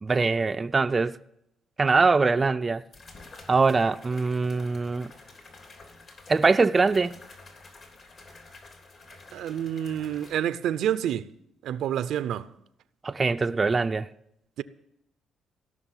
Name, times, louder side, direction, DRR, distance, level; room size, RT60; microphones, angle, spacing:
voice 1, 0.0-1.2 1.8-2.8 3.5-5.1 6.3-7.1 13.0-14.1, right 4 dB, 30° right, 0.4 m, -23 dB
sound 1, 1.9-2.0 2.9-10.3, left 3 dB, 55° left, 3.2 m, -49 dB
voice 2, 9.3-11.3 11.6-12.5 14.6-14.7, right 10 dB, 80° right, 0.5 m, -28 dB
17.0 x 6.2 x 9.0 m
cardioid pair, 90°, 0 cm